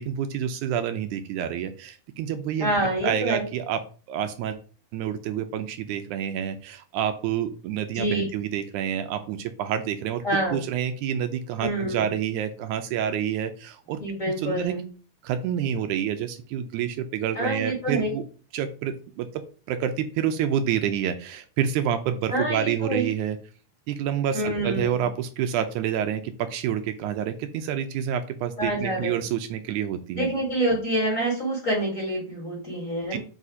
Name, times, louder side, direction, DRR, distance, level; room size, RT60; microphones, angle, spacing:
voice 1, 0.0-2.7 3.0-3.8 4.1-4.6 4.9-10.2 10.5-14.0 14.4-14.9 15.2-18.2 18.5-19.3 19.7-23.4 23.9-30.3 33.1-33.2, right 9 dB, 80° right, 8 dB, 1.9 m, -28 dB
voice 2, 2.6-3.4 7.9-8.2 10.2-10.6 11.6-12.1 14.0-14.8 17.3-18.2 22.3-23.1 24.3-25.1 28.6-29.2 30.2-33.2, right 1 dB, 30° left, -2 dB, 1.7 m, -27 dB
4.9 x 4.2 x 4.8 m, 0.38 s
omnidirectional pair, 3.6 m